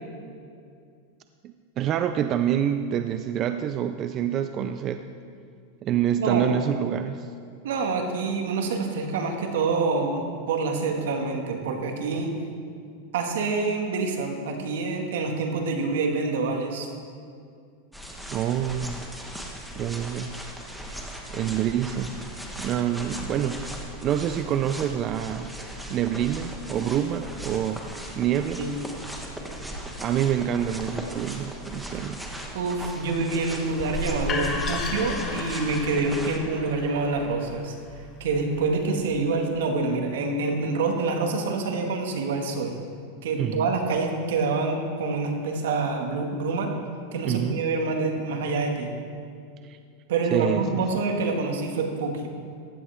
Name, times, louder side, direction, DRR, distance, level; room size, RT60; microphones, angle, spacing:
voice 1, 1.4-5.0 5.8-7.3 18.3-19.0 19.7-20.3 21.3-22.2 22.6-23.6 24.0-25.5 25.9-27.8 28.2-28.6 30.0-32.2 43.4-43.7 47.2-47.6 49.6-49.8 50.3-50.9, right 9 dB, 35° right, 9 dB, 0.5 m, -27 dB
voice 2, 7.6-12.4 13.1-16.9 28.6-28.7 32.5-37.8 38.2-42.8 43.2-46.7 47.1-48.9 50.1-52.3, right 3 dB, 80° right, 3 dB, 1.9 m, -26 dB
sound 1, 17.9-36.4, right 1 dB, ahead, 1.3 m, -38 dB
sound 2, 33.8-39.6, left 3 dB, 30° left, 1.5 m, -34 dB
15.5 x 11.5 x 3.5 m, 2.3 s
supercardioid pair, 130°, 0 cm